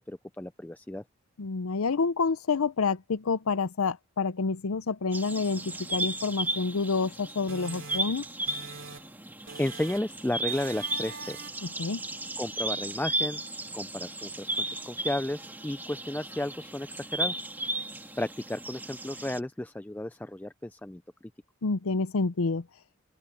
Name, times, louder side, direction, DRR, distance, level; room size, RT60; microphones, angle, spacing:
voice 1, 0.1-1.0 9.6-11.4 12.4-13.4 13.7-17.3 18.2-21.0, left 1 dB, 10° left, 0.4 m, -33 dB
voice 2, 1.4-8.2 11.8-12.0 21.6-22.6, left 4 dB, 85° left, 0.6 m, -28 dB
sound 1, 5.1-19.4, right 2 dB, 10° right, 2.4 m, -35 dB
sound 2, 7.5-9.2 9.5-10.2 10.5-11.7, right 4 dB, 65° right, 3.6 m, -44 dB
open air
head